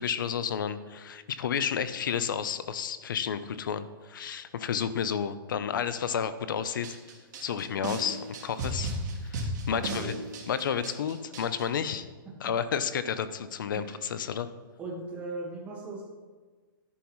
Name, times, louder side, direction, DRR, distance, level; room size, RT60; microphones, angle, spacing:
voice 1, 0.0-7.0 7.4-8.9 9.2-10.1 10.5-12.1 12.4-14.5, left 7 dB, 60° left, 13 dB, 0.7 m, -31 dB
sound 1, 6.8-11.6, right 1 dB, 50° right, 2.7 m, -34 dB
voice 2, 9.7-10.2 12.2-12.5 13.7-14.0 14.8-16.1, right 2 dB, 10° right, -2 dB, 1.6 m, -39 dB
11.5 x 11.0 x 3.2 m, 1.4 s
hypercardioid pair, 170°, 12 cm